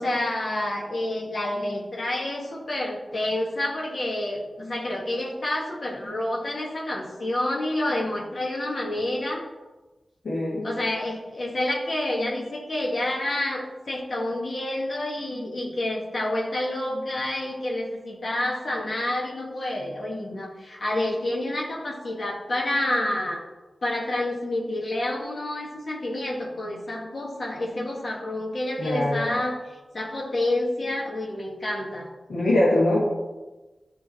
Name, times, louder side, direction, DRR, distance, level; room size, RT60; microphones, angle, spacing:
voice 1, 0.0-9.4 10.6-23.4 23.8-32.1, left 1 dB, 65° left, -2 dB, 1.7 m, -28 dB
voice 2, 10.2-10.7 28.8-29.3 32.3-33.0, left 1 dB, 85° left, -8 dB, 2.1 m, -22 dB
10.5 x 3.9 x 4.3 m, 1.2 s
cardioid pair, 40°, 0 cm